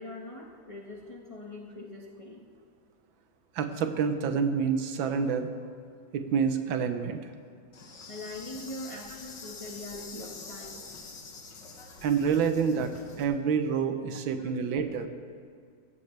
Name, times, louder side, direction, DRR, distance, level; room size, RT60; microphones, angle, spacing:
voice 1, 0.0-2.5 8.1-10.9 14.4-14.5, left 2 dB, 20° left, -2 dB, 1.1 m, -42 dB
voice 2, 3.6-5.5 6.1-7.2 12.0-12.9 13.2-15.1, right 6 dB, 80° right, 8 dB, 1.6 m, -27 dB
Insect, 7.7-13.2, left 4 dB, 65° left, 2.1 m, -45 dB
18.5 x 15.0 x 3.3 m, 2.2 s
omnidirectional pair, 2.2 m